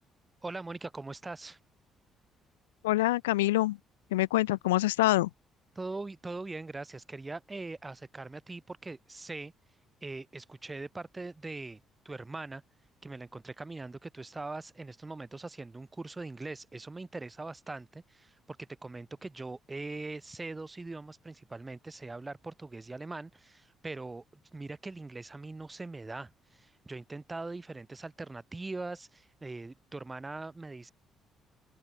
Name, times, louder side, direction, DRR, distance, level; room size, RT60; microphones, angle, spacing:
voice 1, 0.4-1.6 5.7-9.5 10.0-11.8 12.0-12.6 13.0-30.9, right 3 dB, 20° right, 4.7 m, -41 dB
voice 2, 2.8-3.8 4.1-5.3, left 17 dB, 75° left, 0.3 m, -25 dB
open air
figure-of-eight pair, 45°, 0 cm